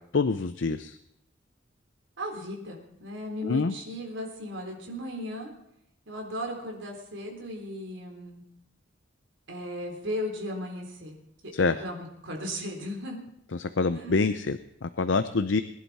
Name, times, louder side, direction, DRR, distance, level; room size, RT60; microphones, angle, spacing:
voice 1, 0.1-1.0 3.4-3.7 11.5-11.8 13.6-15.6, left 4 dB, 65° left, 11 dB, 0.6 m, -26 dB
voice 2, 2.2-5.5 6.1-8.4 9.5-11.2 11.4-13.2 13.9-14.3, equal, 70° right, 1 dB, 3.7 m, -36 dB
21.5 x 11.5 x 4.2 m, 0.76 s
head